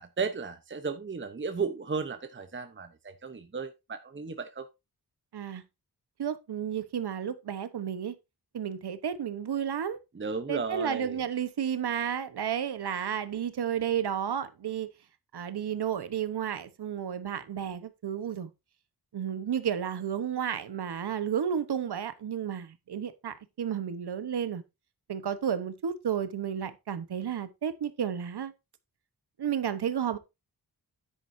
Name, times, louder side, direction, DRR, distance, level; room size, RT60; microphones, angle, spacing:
voice 1, 0.0-4.7 10.1-11.2, right 5 dB, 30° right, 0.9 m, -34 dB
voice 2, 6.2-8.1 8.5-10.0 10.5-14.9 15.3-18.5 19.1-24.6 25.1-28.5 29.4-30.2, right 8 dB, 90° right, 1.1 m, -32 dB
9.9 x 9.0 x 2.7 m
wide cardioid pair, 130°, 38 cm